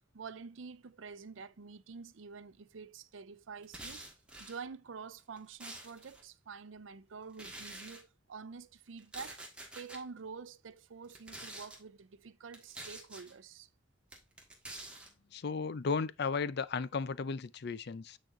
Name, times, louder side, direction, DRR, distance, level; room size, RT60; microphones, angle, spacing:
voice 1, 0.1-4.0 4.4-9.4 9.7-13.7, right 5 dB, 80° right, 0.6 m, -48 dB
sound 1, 3.6-4.6 5.2-6.2 7.3-8.0 9.0-10.0 11.0-11.8 12.5-13.3 14.1-15.1, right 2 dB, 5° right, 1.5 m, -47 dB
voice 2, 15.3-18.2, left 5 dB, 55° left, 0.5 m, -35 dB
9.1 x 4.2 x 3.7 m
head